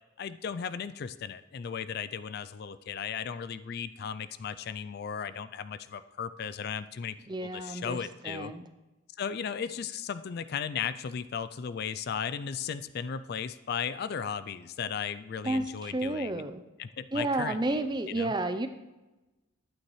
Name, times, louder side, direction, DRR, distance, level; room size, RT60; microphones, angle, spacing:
voice 1, 0.2-7.2 7.4-8.5 9.2-16.4 16.8-17.8 18.2-18.3, left 7 dB, 50° left, 14 dB, 0.3 m, -36 dB
voice 2, 7.3-8.7 15.4-16.6 17.1-18.7, right 2 dB, 20° right, 9 dB, 0.5 m, -31 dB
11.5 x 9.2 x 3.2 m, 1.1 s
head